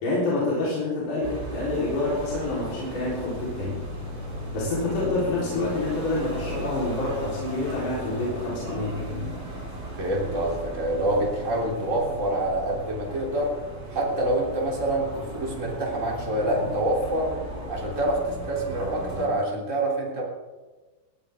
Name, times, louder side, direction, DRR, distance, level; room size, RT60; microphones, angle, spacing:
voice 1, 0.0-3.8 4.5-9.3, left 2 dB, 65° left, -7 dB, 5.5 m, -27 dB
sound 1, 1.2-19.3, equal, 45° right, 7.7 m, -36 dB
voice 2, 10.0-13.5 13.9-17.4 17.7-20.2, right 1 dB, 20° right, -3 dB, 3.3 m, -26 dB
19.0 x 16.0 x 3.7 m, 1.2 s
omnidirectional pair, 3.9 m